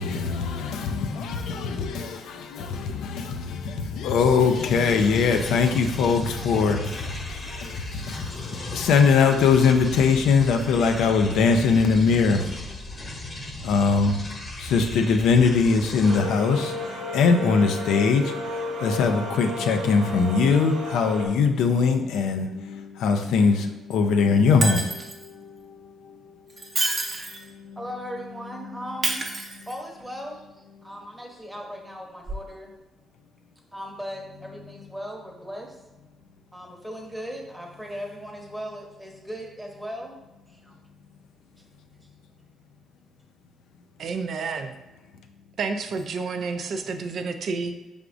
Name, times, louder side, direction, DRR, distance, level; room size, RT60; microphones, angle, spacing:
voice 1, 0.0-12.5 13.6-14.2 14.6-26.3 27.5-27.8 28.4-28.8, left 5 dB, 85° left, 0.4 m, -22 dB
sound 1, 4.5-16.2, left 2 dB, 30° left, 0.7 m, -37 dB
sound 2, 16.0-21.3, left 1 dB, 85° right, 0.8 m, -32 dB
Shatter, 24.6-25.3 26.5-27.5 29.0-30.0 32.3-32.4, right 2 dB, 35° right, 0.7 m, -28 dB
voice 2, 27.8-29.3 29.7-32.7 33.7-35.8 36.5-40.2 40.5-40.7, equal, 5° right, 0.9 m, -38 dB
voice 3, 44.0-44.8 45.6-47.7, right 4 dB, 60° right, 0.4 m, -30 dB
4.8 x 3.4 x 2.5 m
cardioid pair, 90°, 0 cm